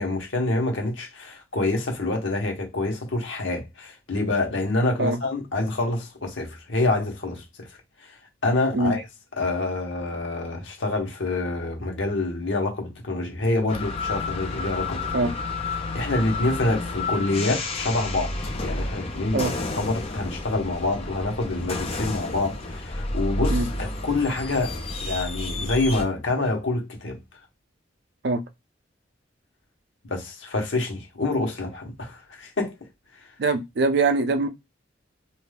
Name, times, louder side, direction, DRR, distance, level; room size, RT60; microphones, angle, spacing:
voice 1, 0.0-7.7 8.0-8.2 8.4-9.0 9.4-15.3 15.8-18.3 18.6-19.4 19.8-27.2 30.0-32.8, left 2 dB, 85° left, 1.1 m, -27 dB
sound 1, 13.7-26.0, left 2 dB, 35° left, 0.6 m, -30 dB
voice 2, 33.4-34.5, right 3 dB, 60° right, 0.5 m, -22 dB
2.5 x 2.3 x 3.3 m
head